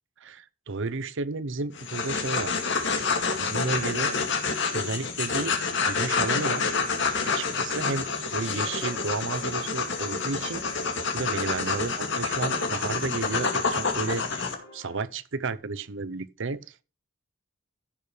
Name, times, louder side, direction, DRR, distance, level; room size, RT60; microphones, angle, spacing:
voice 1, 0.2-2.8 3.2-4.2 4.7-5.6 5.8-6.7 7.2-10.8 11.1-14.4 14.7-16.6, right 3 dB, 60° right, 0.7 m, -32 dB
sound 1, 1.7-14.5, left 4 dB, 60° left, 2.2 m, -28 dB
sound 2, 6.1-15.0, left 2 dB, 85° left, 5.0 m, -48 dB
15.5 x 6.8 x 3.3 m
head